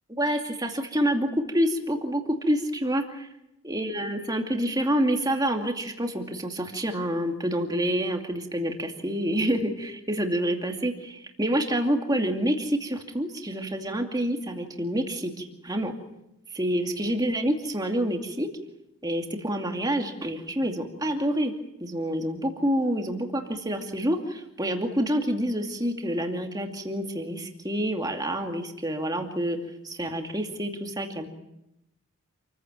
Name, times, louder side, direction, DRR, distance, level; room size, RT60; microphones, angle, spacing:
voice 1, 0.2-3.3 3.6-15.9 16.5-18.5 19.0-21.5 21.8-29.6 29.8-31.3, equal, 15° right, 3 dB, 2.5 m, -27 dB
28.5 x 15.5 x 9.1 m, 0.89 s
head